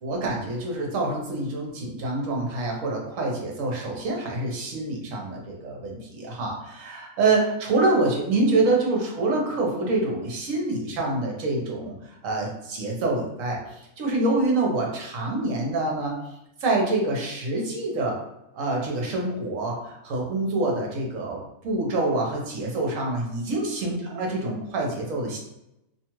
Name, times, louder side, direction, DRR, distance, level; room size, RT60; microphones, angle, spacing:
voice 1, 0.0-16.2 16.6-18.2 18.5-25.4, right 2 dB, 65° right, -1 dB, 1.1 m, -26 dB
2.8 x 2.3 x 3.0 m, 0.85 s
omnidirectional pair, 1.6 m